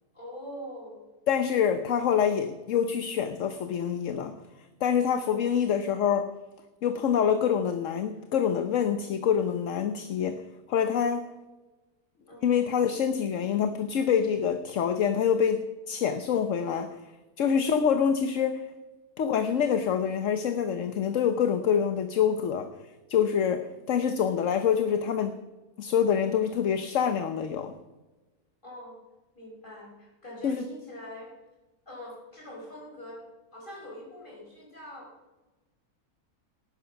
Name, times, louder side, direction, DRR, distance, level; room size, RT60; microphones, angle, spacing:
voice 1, 0.1-1.0 5.3-5.6 12.3-12.5 17.6-17.9 23.6-24.1 28.6-29.0 29.4-31.3 31.9-33.2 33.5-35.1, left 1 dB, 35° left, -2 dB, 5.3 m, -44 dB
voice 2, 1.3-4.3 4.8-6.3 6.8-10.4 10.7-11.3 12.4-17.0 17.4-18.7 19.2-22.7 23.1-25.4 25.8-27.7 30.4-30.6, left 8 dB, 60° left, 8 dB, 1.2 m, -26 dB
18.0 x 9.6 x 5.8 m, 1.1 s
omnidirectional pair, 1.6 m